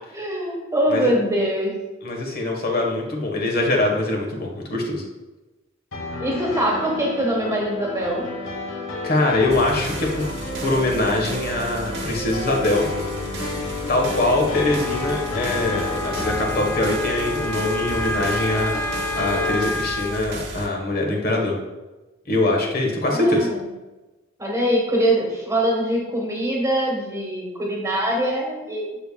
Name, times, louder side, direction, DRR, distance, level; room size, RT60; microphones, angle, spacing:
voice 1, 0.1-1.7 6.2-8.3 23.1-23.6 24.4-29.0, right 1 dB, 15° right, -1 dB, 1.3 m, -23 dB
voice 2, 2.0-5.0 9.0-10.3 10.6-12.9 13.9-21.6 22.3-23.5, left 2 dB, 50° left, 0 dB, 1.2 m, -23 dB
sound 1, 5.9-19.6, left 3 dB, 80° left, 1.3 m, -30 dB
sound 2, 9.5-20.7, right 2 dB, 55° right, 1.0 m, -35 dB
Wind instrument woodwind instrument, 14.5-20.2, left 1 dB, 10° left, 0.5 m, -30 dB
7.8 x 6.8 x 2.3 m, 1.1 s
head